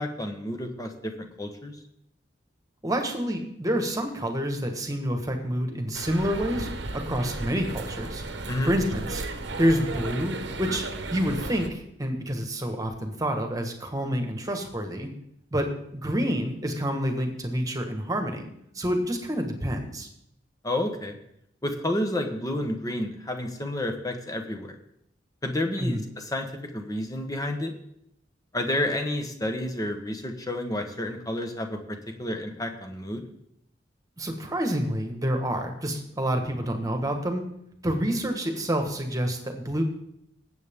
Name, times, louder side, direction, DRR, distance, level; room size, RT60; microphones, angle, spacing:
voice 1, 0.0-1.8 8.5-8.7 20.6-21.2 21.6-24.8 25.4-27.7 28.5-33.2, left 1 dB, 20° left, 5 dB, 1.3 m, -30 dB
voice 2, 2.8-8.2 8.6-9.2 9.6-10.8 11.1-15.1 15.5-18.5 18.7-20.1 25.8-26.1 34.2-37.4 37.8-39.8, equal, 20° right, 5 dB, 1.6 m, -28 dB
sound 1, 5.9-11.7, right 2 dB, 85° right, 1.1 m, -35 dB
19.5 x 8.2 x 3.7 m, 0.75 s
head